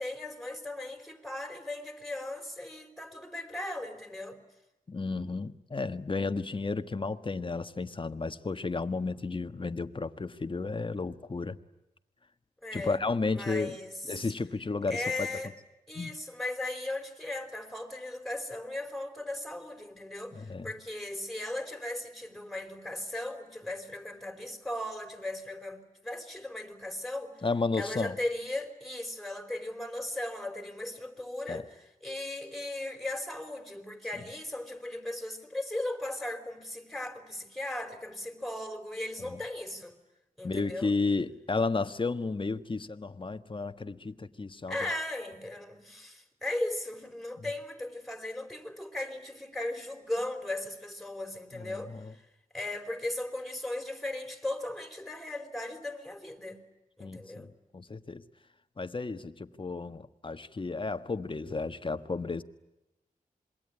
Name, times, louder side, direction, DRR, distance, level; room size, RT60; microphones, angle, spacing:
voice 1, 0.0-4.4 12.6-13.1 13.3-14.3 14.9-15.5 15.9-27.3 27.8-39.9 40.4-40.9 44.7-51.9 52.5-56.6 57.0-57.5, left 1 dB, ahead, 6 dB, 4.6 m, -37 dB
voice 2, 4.9-11.6 12.7-13.8 14.1-15.3 15.9-16.1 20.3-20.7 27.4-28.2 31.5-31.6 39.2-39.4 40.4-44.8 47.4-47.5 51.5-52.1 57.0-58.2 58.8-62.4, left 3 dB, 35° left, 10 dB, 1.5 m, -33 dB
27.0 x 22.5 x 9.8 m, 0.96 s
cardioid pair, 75°, 14 cm